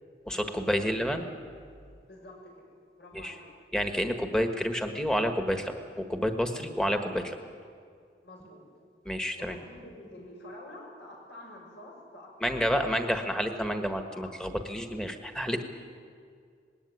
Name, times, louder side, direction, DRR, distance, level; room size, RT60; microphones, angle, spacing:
voice 1, 0.2-1.3 3.1-3.3 3.7-7.4 9.0-9.6 12.4-15.6, equal, 5° left, 6 dB, 1.3 m, -29 dB
voice 2, 2.1-2.7 3.0-3.4 8.2-8.6 9.3-13.3 14.1-14.3, left 1 dB, 85° left, -1 dB, 6.7 m, -48 dB
20.0 x 17.5 x 9.7 m, 2.2 s
head